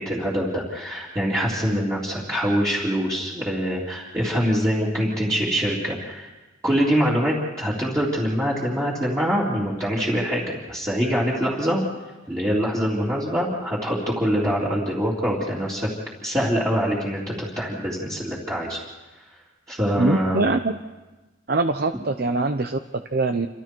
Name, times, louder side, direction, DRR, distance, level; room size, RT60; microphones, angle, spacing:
voice 1, 0.0-6.3 6.6-11.8 12.3-15.9 16.2-18.8 19.7-20.5, equal, 15° right, -7 dB, 3.6 m, -24 dB
voice 2, 20.0-20.8 21.5-23.5, right 3 dB, 55° right, 7 dB, 0.8 m, -23 dB
29.0 x 26.5 x 4.7 m, 1.2 s
head